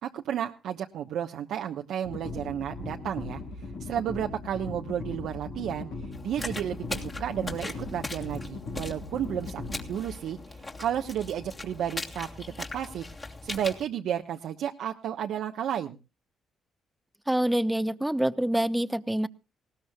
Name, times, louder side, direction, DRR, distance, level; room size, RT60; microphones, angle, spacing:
voice 1, 0.0-5.9 6.2-12.3 12.6-16.0, right 10 dB, 75° right, 3 dB, 1.1 m, -32 dB
sound 1, 2.0-12.1, left 3 dB, 90° left, 5.8 m, -39 dB
sound 2, 6.1-13.8, left 2 dB, 30° left, 2.9 m, -40 dB
voice 2, 17.3-19.3, right 1 dB, 5° right, 13 dB, 1.0 m, -26 dB
19.5 x 18.5 x 2.3 m, 0.31 s
cardioid pair, 90°, 0 cm